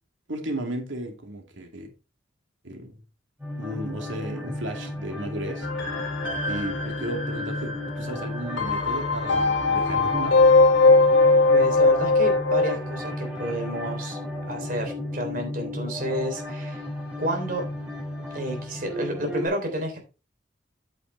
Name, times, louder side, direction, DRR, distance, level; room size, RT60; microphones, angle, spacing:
voice 1, 0.3-1.9 2.6-3.0 3.6-5.7 6.5-10.4, right 1 dB, 85° right, 2.6 m, -34 dB
sound 1, 3.4-19.5, left 1 dB, 10° right, 6.0 m, -34 dB
sound 2, 5.6-12.7, left 3 dB, 80° left, 2.1 m, -20 dB
voice 2, 11.5-14.2 14.5-16.8 17.2-17.6 18.3-20.0, right 1 dB, 45° right, 3.4 m, -30 dB
9.0 x 8.1 x 3.4 m
head